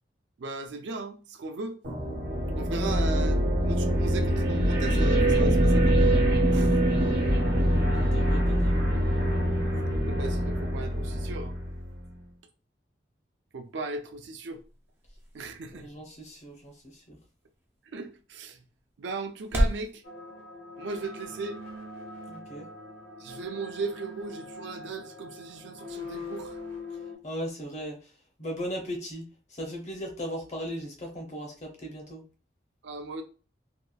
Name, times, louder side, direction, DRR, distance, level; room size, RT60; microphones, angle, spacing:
voice 1, 0.4-1.8 2.5-6.1 6.5-6.8 10.0-11.5 13.5-14.6 15.3-15.9 17.9-18.6 19.0-20.0 20.8-21.6 23.2-26.6 32.8-33.2, right 3 dB, 80° right, 0.4 m, -37 dB
sound 1, 1.8-12.0, equal, 65° right, 0.9 m, -24 dB
voice 2, 6.7-8.9 15.7-17.2 22.3-22.7 27.2-28.1 28.4-32.2, equal, 40° left, 0.6 m, -38 dB
sound 2, 13.6-19.9, equal, 10° right, 0.4 m, -35 dB
sound 3, 20.0-27.2, left 2 dB, 70° left, 0.9 m, -42 dB
2.8 x 2.2 x 2.3 m
head